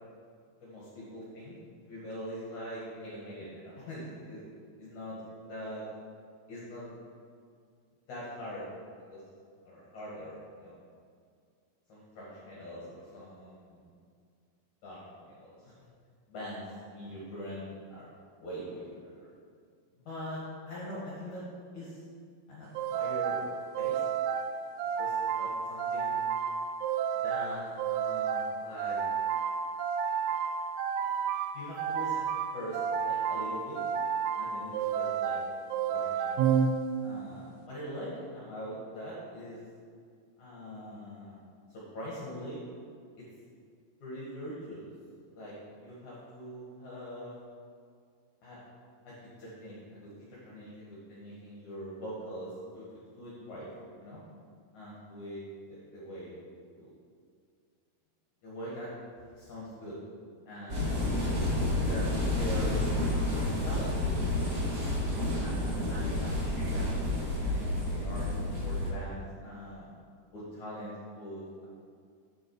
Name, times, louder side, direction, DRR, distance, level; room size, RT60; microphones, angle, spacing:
voice 1, 0.6-1.6 1.8-4.4 4.8-5.2 5.5-5.8 6.5-6.9 8.1-8.6 9.1-9.2 9.6-10.8 11.9-13.8 14.8-15.7 16.3-16.6 16.9-18.1 18.4-18.9 19.1-19.2 19.9-20.4 20.7-21.5 21.7-22.0 22.5-23.4 23.7-24.0 25.0-26.3 27.1-29.1 31.5-33.8 34.4-35.4 35.8-36.3 37.0-39.6 40.4-41.4 41.7-42.6 43.2-43.3 44.0-44.8 45.3-45.5 45.8-47.3 48.4-48.6 49.0-53.7 54.0-54.2 54.7-55.4 55.7-56.4 56.8-56.9 58.4-58.9 59.3-60.0 60.5-61.2 61.7-62.9 63.6-63.9 64.8-65.0 65.4-69.9 70.3-71.7, equal, 55° left, -7 dB, 2.8 m, -43 dB
sound 1, 22.7-37.3, right 7 dB, 85° right, 2.5 m, -31 dB
sound 2, 60.7-68.9, left 1 dB, 45° right, 1.1 m, -30 dB
10.0 x 7.8 x 4.8 m, 2.2 s
omnidirectional pair, 4.7 m